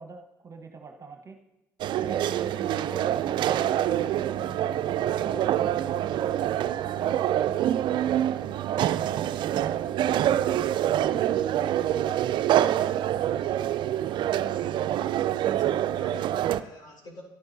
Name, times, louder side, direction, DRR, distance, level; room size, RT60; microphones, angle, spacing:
voice 1, 0.0-1.4 1.9-4.8 5.2-6.4 6.8-7.3 7.9-8.9 9.5-10.9 11.3-12.9, right 4 dB, 35° right, 5 dB, 1.0 m, -44 dB
sound 1, 1.8-16.6, right 11 dB, 55° right, 0.4 m, -26 dB
voice 2, 15.4-17.2, left 1 dB, 50° left, 0 dB, 4.2 m, -47 dB
13.0 x 10.5 x 2.7 m, 0.94 s
hypercardioid pair, 60°, 10 cm